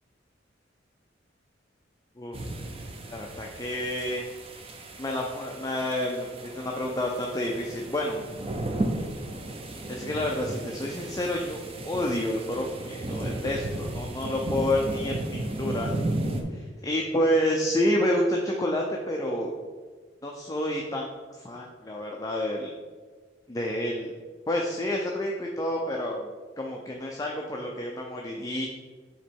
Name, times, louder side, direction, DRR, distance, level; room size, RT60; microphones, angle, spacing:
sound 1, 2.3-16.4, right 1 dB, 30° right, 0.6 m, -34 dB
voice 1, 3.0-4.2 5.0-8.2 9.9-11.6 11.8-15.1 15.6-15.9 16.5-19.5 20.2-21.1 21.3-22.7 23.5-24.1 24.5-26.3 26.6-28.7, left 1 dB, 20° left, -1 dB, 0.5 m, -29 dB
7.4 x 3.0 x 4.5 m, 1.4 s
head